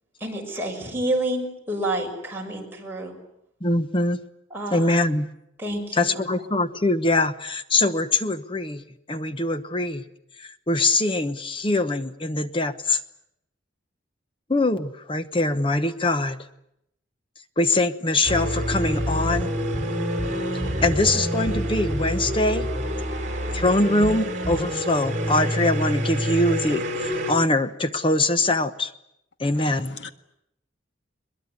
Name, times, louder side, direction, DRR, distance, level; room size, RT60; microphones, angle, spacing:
voice 1, 0.2-3.2 4.5-4.9 5.6-6.4, right 1 dB, 10° right, 0 dB, 6.3 m, -29 dB
voice 2, 3.6-4.2 4.7-5.3 5.9-8.8 9.1-10.0 10.4-13.0 14.5-16.4 17.6-19.5 20.8-22.7 23.5-28.9 29.4-30.0, left 2 dB, 25° left, 11 dB, 1.1 m, -23 dB
sound 1, 18.3-27.3, equal, 40° right, 4.2 m, -27 dB
voice 3, 29.6-30.1, left 4 dB, 65° left, 8 dB, 1.8 m, -41 dB
22.5 x 21.5 x 9.7 m, 0.79 s
head